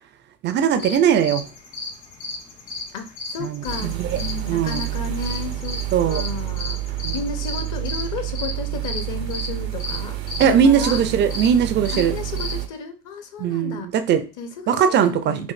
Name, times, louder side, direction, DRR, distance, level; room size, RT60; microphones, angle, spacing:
voice 1, 0.4-1.5 3.4-4.2 4.5-4.9 5.9-6.3 7.0-7.2 10.4-12.1 13.4-14.2 14.7-15.5, right 8 dB, 25° right, 9 dB, 0.4 m, -20 dB
sound 1, 0.7-12.6, left 3 dB, 85° left, 1.5 m, -35 dB
voice 2, 2.9-6.8 7.1-10.2 10.4-11.0 11.9-13.9 14.4-15.5, left 5 dB, 40° left, 8 dB, 0.8 m, -33 dB
sound 2, 3.6-12.7, right 14 dB, 90° right, 0.7 m, -29 dB
5.3 x 2.6 x 2.4 m, 0.33 s
hypercardioid pair, 85°, 48 cm